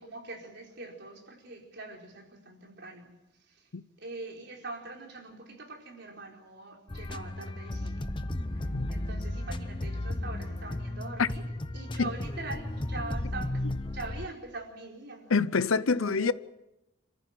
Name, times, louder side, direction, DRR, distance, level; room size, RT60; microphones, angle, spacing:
voice 1, 0.0-3.1 4.0-8.1 8.5-8.6 8.9-11.4 11.7-13.6 13.9-15.3 15.8-16.3, right 3 dB, 55° right, 4.8 m, -43 dB
sound 1, 6.9-14.3, left 1 dB, 25° left, 0.8 m, -34 dB
voice 2, 15.3-16.3, left 4 dB, 80° left, 0.7 m, -26 dB
28.0 x 14.5 x 9.2 m
head